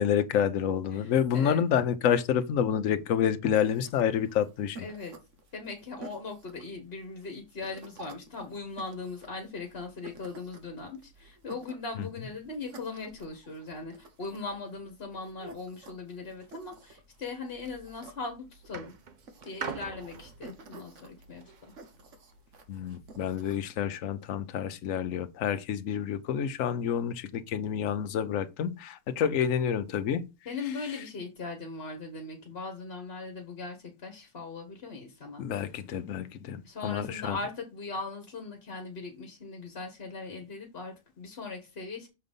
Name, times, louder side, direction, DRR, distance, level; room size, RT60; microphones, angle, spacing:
voice 1, 0.0-4.9 22.7-30.3 35.4-37.4, left 8 dB, 75° left, 1.1 m, -28 dB
voice 2, 0.9-1.6 4.8-5.1 5.5-18.9 19.4-21.5 30.4-35.7 36.6-42.1, left 3 dB, 50° left, 1.5 m, -39 dB
sound 1, 3.6-23.6, right 3 dB, 65° right, 1.5 m, -52 dB
sound 2, 17.7-18.1 18.7-22.0 22.8-22.9, right 6 dB, 45° right, 0.7 m, -42 dB
6.5 x 3.9 x 5.2 m
omnidirectional pair, 1.4 m